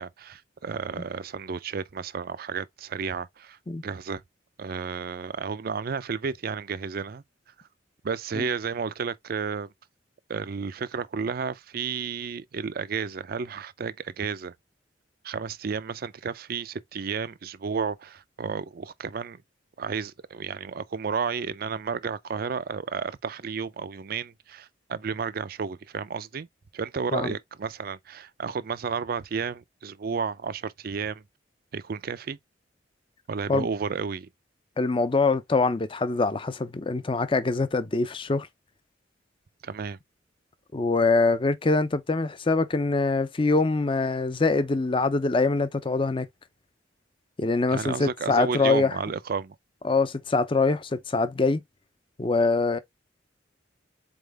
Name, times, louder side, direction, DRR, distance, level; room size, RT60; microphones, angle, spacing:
voice 1, 0.0-3.6 3.8-4.2 4.6-7.2 8.0-9.7 10.3-14.5 15.2-19.4 19.8-26.5 26.7-31.2 31.7-32.4 33.3-34.3 39.6-40.0 47.7-49.6, right 5 dB, 50° right, 0.4 m, -32 dB
voice 2, 34.8-38.5 40.7-46.3 47.4-49.0 49.8-51.6 52.2-52.8, left 3 dB, 30° left, 0.5 m, -24 dB
4.2 x 3.6 x 3.3 m
head